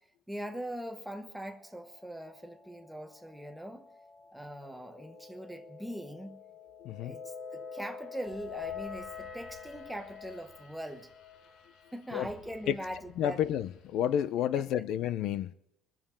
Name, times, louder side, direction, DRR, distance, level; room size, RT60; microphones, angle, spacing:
voice 1, 0.3-3.9 4.3-6.4 7.0-7.2 7.5-11.1 11.9-13.4 14.6-14.7, right 1 dB, ahead, 1.0 m, -41 dB
sound 1, 1.3-12.6, left 6 dB, 30° left, 2.5 m, -47 dB
voice 2, 6.8-7.1 12.1-12.3 12.7-12.8 13.2-15.5, left 10 dB, 65° left, 0.5 m, -30 dB
sound 2, 8.2-14.3, left 6 dB, 85° left, 1.4 m, -59 dB
22.0 x 7.4 x 8.7 m
cardioid pair, 175°, 0 cm